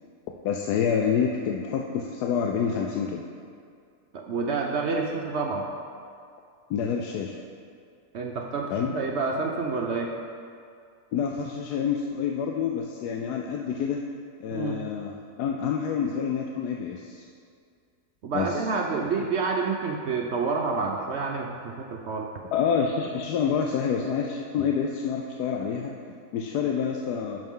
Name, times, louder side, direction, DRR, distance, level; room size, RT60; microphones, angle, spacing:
voice 1, 0.4-3.3 6.7-7.4 8.7-8.9 11.1-14.0 14.4-17.3 18.3-18.6 19.0-19.1 22.5-27.4, left 7 dB, 90° left, 1 dB, 1.1 m, -28 dB
voice 2, 4.1-5.7 8.1-10.1 14.5-14.8 18.2-22.3, right 4 dB, 65° right, 1 dB, 0.7 m, -28 dB
11.5 x 5.5 x 3.6 m, 2.3 s
omnidirectional pair, 1.6 m